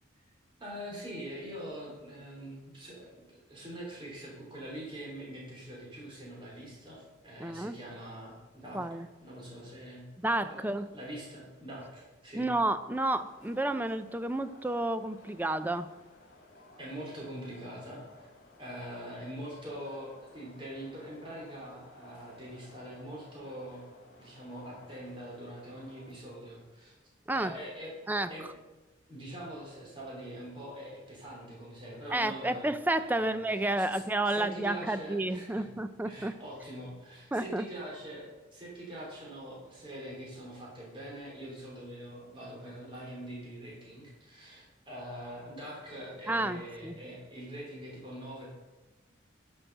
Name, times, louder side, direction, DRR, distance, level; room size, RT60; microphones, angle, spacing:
voice 1, 0.6-10.1 10.5-12.5 16.8-18.3 18.6-23.8 24.2-26.9 27.3-27.9 28.3-28.4 29.1-32.7 33.0-35.7 36.0-48.5, right 1 dB, 25° right, -4 dB, 3.2 m, -44 dB
voice 2, 7.4-7.8 8.7-9.1 10.2-10.9 12.3-15.9 27.3-27.5 28.1-28.3 32.1-36.3 37.3-37.7 46.3-47.0, right 2 dB, 10° right, 11 dB, 0.4 m, -31 dB
sound 1, 12.9-26.1, left 2 dB, 45° left, 4.1 m, -57 dB
10.5 x 6.3 x 6.6 m, 1.1 s
head